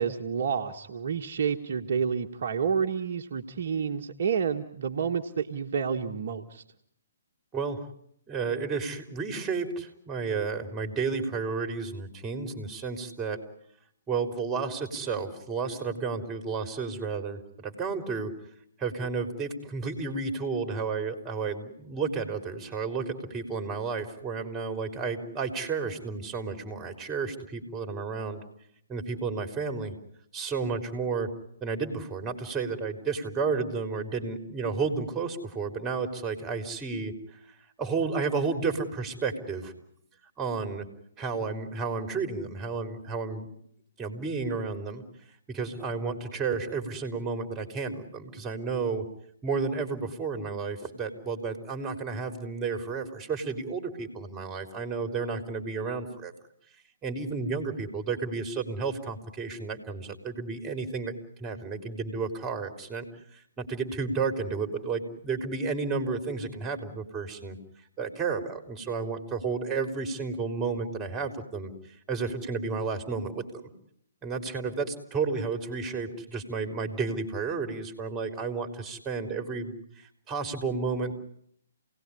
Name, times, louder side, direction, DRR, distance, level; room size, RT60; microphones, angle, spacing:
voice 1, 0.0-6.6, right 6 dB, 55° right, 4 dB, 1.5 m, -29 dB
voice 2, 8.3-13.4 14.1-18.3 18.8-28.4 28.9-29.9 30.3-31.3 31.6-37.1 37.8-39.7 40.4-40.8 41.2-43.5 44.0-45.0 45.5-49.0 49.4-56.3 57.0-61.1 61.4-63.1 63.3-67.6 68.0-73.7 74.2-81.1, right 4 dB, 15° right, 8 dB, 3.7 m, -32 dB
28.5 x 19.0 x 9.9 m, 0.73 s
figure-of-eight pair, 130°, 0 cm